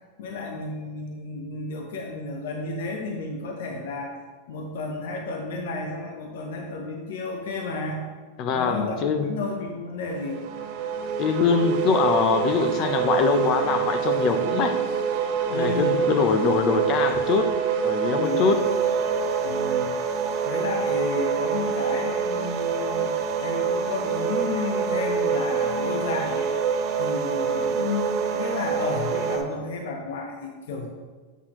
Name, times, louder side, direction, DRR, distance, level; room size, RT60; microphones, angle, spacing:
voice 1, 0.2-4.1 4.5-8.0 8.5-10.4 15.5-16.1 18.2-18.5 19.4-20.0 20.4-26.5 27.0-30.9, left 3 dB, 70° left, 2 dB, 0.8 m, -32 dB
voice 2, 8.4-9.3 11.2-14.8 15.5-17.5 17.8-18.6, left 5 dB, 35° left, 7 dB, 0.6 m, -23 dB
sound 1, 10.2-29.4, right 6 dB, 45° right, 0.7 m, -26 dB
sound 2, 18.2-29.4, right 3 dB, 25° right, 1.1 m, -35 dB
8.2 x 5.9 x 3.0 m, 1.4 s
supercardioid pair, 155°, 0 cm